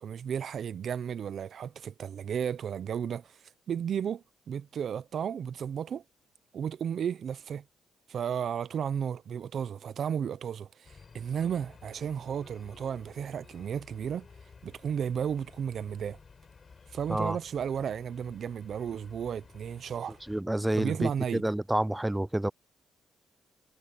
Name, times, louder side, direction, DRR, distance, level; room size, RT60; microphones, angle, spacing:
voice 1, 0.0-3.4 3.7-6.0 6.5-7.6 8.1-14.3 14.6-16.2 16.9-20.2 20.7-21.4, right 8 dB, 60° right, 0.8 m, -33 dB
sound 1, 10.8-20.4, left 5 dB, 35° left, 5.4 m, -54 dB
voice 2, 20.3-22.5, right 1 dB, 10° right, 0.3 m, -29 dB
cardioid pair, 90°, 0 cm